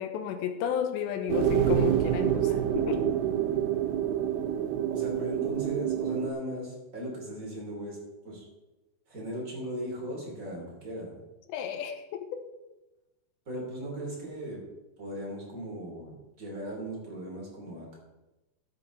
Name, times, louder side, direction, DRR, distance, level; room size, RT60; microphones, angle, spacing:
voice 1, 0.0-3.0 11.5-12.4, left 8 dB, 75° left, 7 dB, 3.1 m, -32 dB
sound 1, 1.3-6.3, right 10 dB, 75° right, 2.7 m, -27 dB
voice 2, 4.9-8.0 8.2-8.5 9.1-11.2 13.4-14.6 15.0-18.0, right 1 dB, 20° right, -3 dB, 3.4 m, -38 dB
13.0 x 8.1 x 4.1 m, 1.0 s
omnidirectional pair, 5.2 m